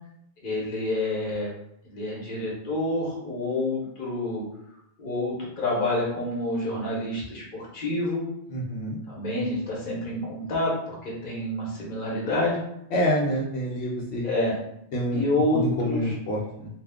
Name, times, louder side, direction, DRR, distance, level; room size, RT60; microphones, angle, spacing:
voice 1, 0.4-1.5 1.8-4.4 5.0-8.2 9.1-12.6 14.2-14.6 15.1-16.1, left 1 dB, 55° left, -4 dB, 1.1 m, -28 dB
voice 2, 8.5-9.0 12.9-14.3 14.9-15.2 15.5-16.7, equal, 85° left, -4 dB, 0.9 m, -27 dB
2.5 x 2.3 x 3.4 m, 0.75 s
omnidirectional pair, 1.1 m